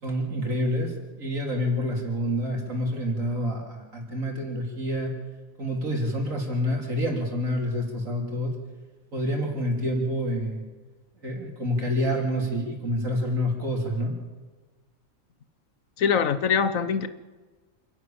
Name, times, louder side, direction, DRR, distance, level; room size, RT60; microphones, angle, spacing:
voice 1, 0.0-5.1 5.6-8.6 9.1-10.6 11.2-14.2, equal, 80° right, 1 dB, 4.0 m, -28 dB
voice 2, 16.0-17.1, left 6 dB, 80° left, 13 dB, 1.4 m, -23 dB
27.5 x 11.0 x 8.8 m, 1.3 s
omnidirectional pair, 1.4 m